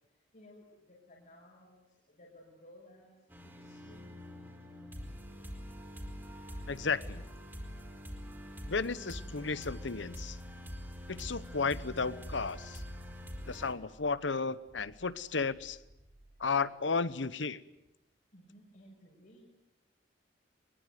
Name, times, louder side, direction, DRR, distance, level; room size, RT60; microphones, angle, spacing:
voice 1, 0.3-3.1 3.4-4.5 8.3-8.8 18.3-19.4, left 1 dB, 50° left, -3 dB, 6.0 m, -58 dB
sound 1, 3.3-13.7, equal, 10° right, 4.6 m, -45 dB
voice 2, 6.7-7.2 8.7-10.4 11.1-12.8 13.5-15.8 16.4-17.6, left 4 dB, 75° left, 16 dB, 1.0 m, -33 dB
sound 2, 8.4-17.5, right 1 dB, 75° right, 5.9 m, -61 dB
23.5 x 22.0 x 9.4 m, 0.88 s
head